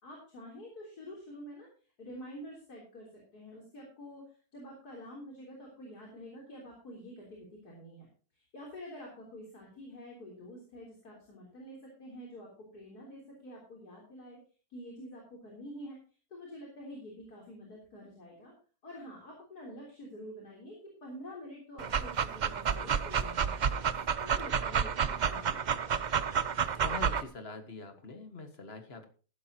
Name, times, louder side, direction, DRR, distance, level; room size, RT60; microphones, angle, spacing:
voice 1, 0.0-1.7 2.0-3.1 3.3-8.1 8.3-14.4 14.7-16.0 16.3-18.5 18.8-20.8 21.0-23.7 24.2-25.7, equal, 85° left, -2 dB, 4.1 m, -47 dB
Dog, 21.8-27.2, right 7 dB, 60° right, 0.4 m, -30 dB
voice 2, 26.8-29.1, left 3 dB, 40° left, 7 dB, 1.8 m, -44 dB
14.5 x 12.0 x 2.9 m, 0.38 s
omnidirectional pair, 1.6 m